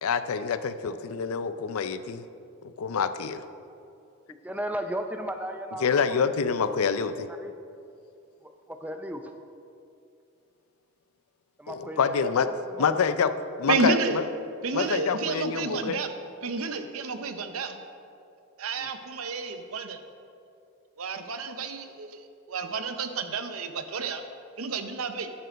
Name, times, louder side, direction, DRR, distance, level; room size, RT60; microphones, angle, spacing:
voice 1, 0.0-2.2 2.6-3.4 5.8-7.3 11.7-12.5 12.8-13.3 13.6-14.2 14.7-16.0, left 6 dB, 90° left, 12 dB, 0.5 m, -26 dB
voice 2, 4.4-6.2 7.2-7.5 8.4-9.3 11.6-13.6 18.8-18.9, equal, 5° right, 5 dB, 0.5 m, -36 dB
voice 3, 13.7-14.2 14.6-16.2 16.4-17.8 18.6-20.0 21.0-24.2 24.6-25.3, right 4 dB, 85° right, 8 dB, 0.7 m, -30 dB
10.5 x 6.7 x 5.1 m, 2.5 s
head